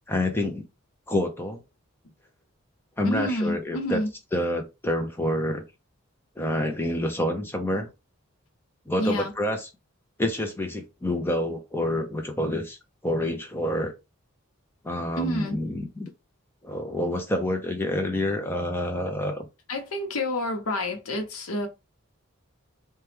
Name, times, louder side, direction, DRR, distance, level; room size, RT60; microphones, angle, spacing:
voice 1, 0.1-0.6 1.1-1.6 3.0-4.0 4.3-5.6 6.4-7.9 8.9-9.7 10.2-12.8 13.0-13.9 14.8-16.1 16.6-19.5, left 1 dB, 10° left, 0.5 m, -27 dB
voice 2, 3.0-4.1 9.0-9.3 15.2-15.6 19.7-21.7, left 1 dB, 80° left, 0.8 m, -28 dB
2.9 x 2.2 x 3.3 m
head